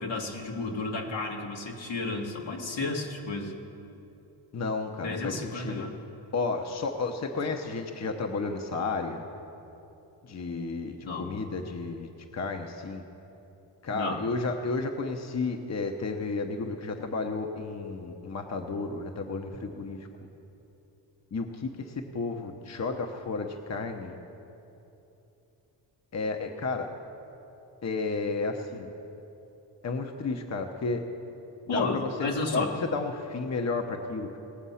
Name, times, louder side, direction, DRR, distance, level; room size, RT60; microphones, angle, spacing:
voice 1, 0.0-3.5 5.0-5.9 11.1-11.3 13.9-14.2 31.7-32.8, left 3 dB, 75° left, 0 dB, 1.8 m, -32 dB
voice 2, 4.5-5.8 6.3-9.2 10.2-13.0 13.8-20.0 21.3-24.2 26.1-26.9 27.8-28.9 29.8-31.0 31.7-34.4, left 3 dB, 35° left, 4 dB, 0.9 m, -32 dB
18.5 x 7.3 x 5.7 m, 2.9 s
cardioid pair, 75°, 45 cm